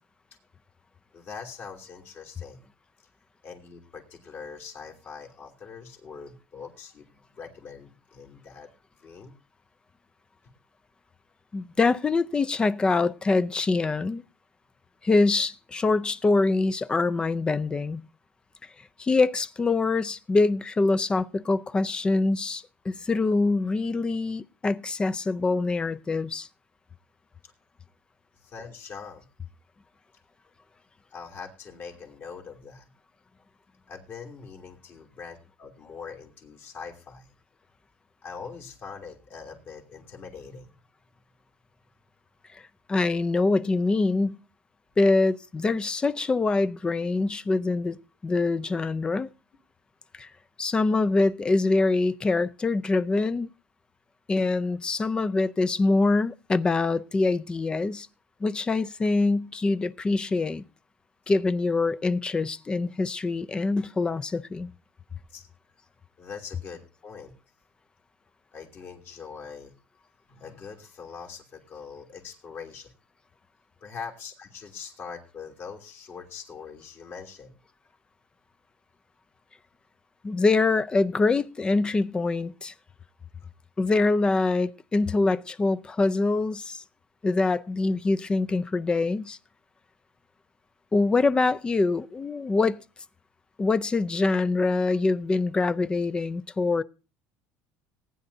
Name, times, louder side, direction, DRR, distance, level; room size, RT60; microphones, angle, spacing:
voice 1, 1.1-2.7 3.4-8.7 9.0-9.3 27.4-27.5 28.4-29.2 31.1-32.9 33.9-37.3 38.2-40.7 65.3-65.5 66.2-67.3 68.5-69.7 70.3-72.9 73.8-77.5, left 5 dB, 40° left, 3.0 m, -42 dB
voice 2, 11.5-14.2 15.0-18.0 19.0-26.5 42.5-42.6 42.9-44.4 45.0-49.3 50.1-50.3 50.6-53.5 54.3-58.1 58.4-60.6 61.3-64.7 80.2-82.7 83.8-86.8 87.2-89.4 90.9-92.8 93.6-96.8, left 3 dB, 15° left, 0.5 m, -24 dB
19.5 x 9.8 x 2.7 m
cardioid pair, 140°, 5 cm